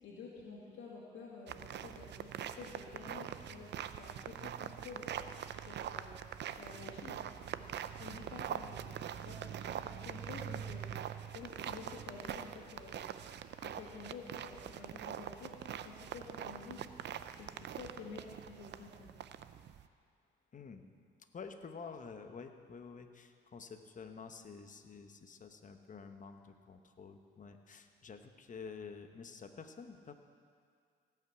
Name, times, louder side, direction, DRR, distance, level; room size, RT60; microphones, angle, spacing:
voice 1, 0.0-5.1 5.5-6.2 6.5-9.4 9.7-10.9 11.3-13.0 13.6-16.9 17.4-19.1, left 4 dB, 70° left, -4 dB, 2.4 m, -50 dB
sound 1, 1.5-19.9, right 9 dB, 60° right, 0.6 m, -44 dB
voice 2, 20.5-20.9 21.3-30.1, left 5 dB, 40° left, 7 dB, 1.1 m, -49 dB
17.5 x 5.9 x 8.0 m, 2.2 s
cardioid pair, 90°, 20 cm